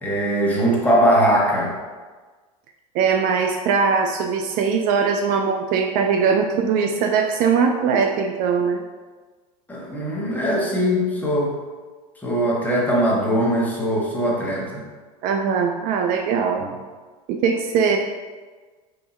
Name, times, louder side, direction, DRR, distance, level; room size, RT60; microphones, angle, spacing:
voice 1, 0.0-1.7 9.7-11.5 12.2-14.8 16.6-16.7, equal, 10° left, -3 dB, 1.0 m, -21 dB
voice 2, 2.9-8.8 15.2-16.6 17.3-18.0, right 6 dB, 50° right, 4 dB, 0.4 m, -21 dB
3.4 x 2.8 x 4.2 m, 1.4 s
hypercardioid pair, 95°, 18 cm